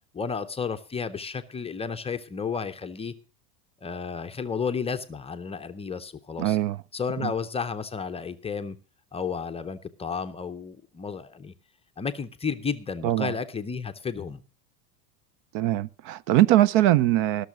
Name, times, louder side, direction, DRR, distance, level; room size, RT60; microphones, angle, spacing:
voice 1, 0.1-3.1 3.8-6.6 6.9-8.8 9.1-11.5 12.0-14.4, left 5 dB, 15° left, 0.5 m, -32 dB
voice 2, 6.4-6.8 7.2-7.3 13.0-13.3 15.5-17.5, right 14 dB, 50° right, 0.5 m, -21 dB
17.0 x 6.7 x 6.2 m
supercardioid pair, 120°, 45 cm